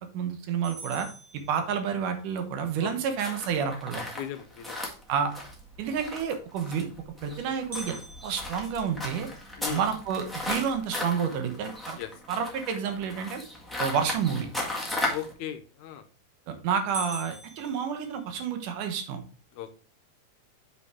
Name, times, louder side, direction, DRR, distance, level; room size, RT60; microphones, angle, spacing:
voice 1, 0.1-1.1 1.5-4.0 5.1-5.3 5.8-6.9 7.2-8.0 8.2-9.3 9.7-12.0 12.3-13.4 13.8-14.5 16.5-19.2, right 7 dB, 85° right, 7 dB, 2.6 m, -29 dB
sound 1, 0.6-2.2 7.7-9.9 10.4-10.5 11.0-11.1 11.7-12.1 15.7-16.1 16.5-16.6 16.9-18.7, equal, 35° right, 1.7 m, -43 dB
sound 2, 3.2-15.3, left 2 dB, ahead, 0.7 m, -36 dB
voice 2, 4.2-4.8 9.5-9.8 11.9-12.1 15.1-16.1 19.5-19.8, left 11 dB, 80° left, 9 dB, 2.0 m, -37 dB
7.1 x 5.6 x 3.4 m, 0.38 s
omnidirectional pair, 3.6 m